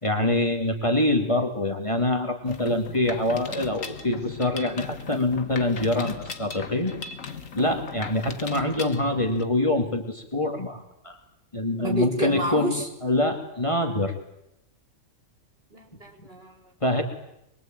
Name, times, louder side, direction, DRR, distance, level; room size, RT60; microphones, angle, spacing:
voice 1, 0.0-6.9 7.5-11.2 11.5-12.8 13.0-14.1 16.8-17.0, left 2 dB, 25° left, 4 dB, 2.8 m, -25 dB
Mechanisms, 2.5-9.4, left 5 dB, 90° left, 2.0 m, -38 dB
voice 2, 11.8-12.9 15.7-16.7, right 1 dB, 50° right, 2 dB, 4.9 m, -30 dB
24.5 x 23.0 x 9.2 m, 0.83 s
omnidirectional pair, 1.3 m